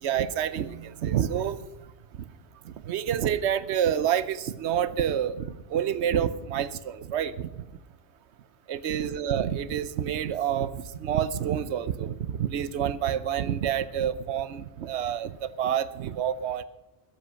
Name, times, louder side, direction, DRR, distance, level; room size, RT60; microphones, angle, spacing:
voice 1, 0.0-1.6 2.9-7.6 8.7-16.6, right 9 dB, 85° right, 16 dB, 1.0 m, -28 dB
13.5 x 10.5 x 6.4 m, 1.0 s
omnidirectional pair, 1.1 m